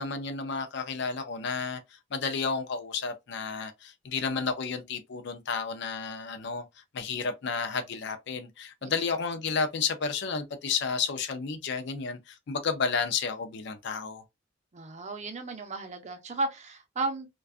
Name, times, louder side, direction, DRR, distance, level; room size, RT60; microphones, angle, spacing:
voice 1, 0.0-1.8 2.1-6.7 6.9-14.2, left 5 dB, 65° left, 0.5 m, -31 dB
voice 2, 14.7-17.3, right 3 dB, 40° right, 0.5 m, -34 dB
2.5 x 2.3 x 2.3 m
head